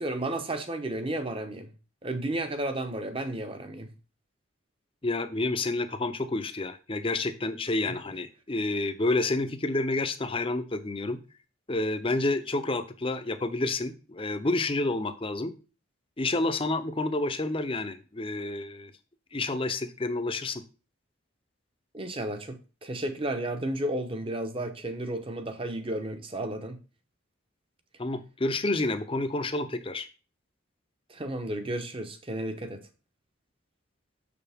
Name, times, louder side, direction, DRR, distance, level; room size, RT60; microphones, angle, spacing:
voice 1, 0.0-1.7 2.0-3.9 7.9-8.0 21.9-26.8 31.1-32.8, right 1 dB, 25° right, 0.8 m, -33 dB
voice 2, 5.0-11.2 11.7-15.5 16.2-18.9 19.3-20.6 28.0-30.1, left 2 dB, 25° left, 0.6 m, -29 dB
6.9 x 6.5 x 3.5 m
head